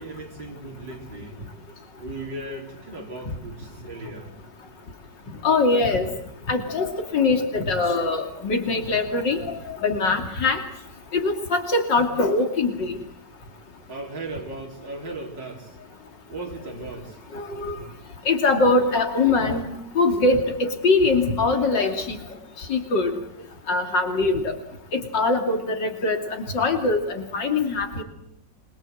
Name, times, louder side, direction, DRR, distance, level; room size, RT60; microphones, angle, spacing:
voice 1, 0.0-1.4 2.0-4.3 13.9-15.8 16.3-17.2 17.7-17.9, right 2 dB, 80° right, -1 dB, 4.5 m, -37 dB
voice 2, 5.4-6.1 6.5-10.6 11.1-13.0 17.3-17.8 18.2-19.7 19.9-22.2 22.6-23.1 23.7-24.6 24.9-28.0, left 3 dB, 80° left, 4 dB, 3.4 m, -22 dB
26.0 x 22.0 x 7.8 m, 0.77 s
omnidirectional pair, 1.9 m